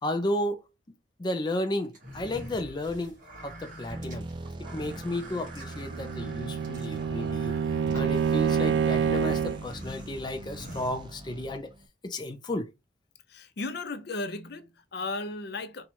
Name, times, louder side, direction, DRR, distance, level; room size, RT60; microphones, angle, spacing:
voice 1, 0.0-0.6 1.2-4.3 4.6-7.5 7.9-11.7 12.0-12.7, left 1 dB, 25° left, 0.5 m, -33 dB
sound 1, 1.9-11.6, right 1 dB, 45° right, 2.0 m, -46 dB
sound 2, 3.9-11.9, right 1 dB, 25° right, 0.5 m, -42 dB
Bowed string instrument, 5.8-9.7, right 7 dB, 85° right, 0.3 m, -27 dB
voice 2, 13.3-15.9, left 2 dB, 65° left, 0.6 m, -35 dB
4.4 x 2.4 x 4.3 m
head